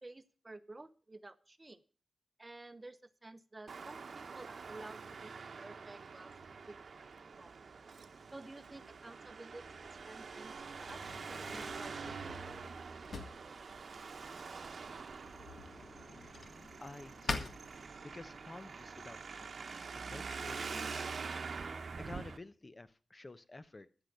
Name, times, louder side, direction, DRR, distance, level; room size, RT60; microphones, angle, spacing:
voice 1, 0.0-1.8 2.4-6.7 7.4-7.5 8.3-9.6 10.0-12.4, right 2 dB, 30° right, 13 dB, 0.9 m, -52 dB
Traffic noise roadway noise, 3.7-22.4, right 5 dB, 65° right, 1.1 m, -45 dB
Drawer open or close, 9.6-18.4, left 4 dB, 65° left, 1.7 m, -47 dB
voice 2, 16.8-21.3 21.6-23.9, left 2 dB, 35° left, 12 dB, 0.9 m, -52 dB
13.0 x 8.0 x 6.7 m, 0.39 s
cardioid pair, 60°, 0 cm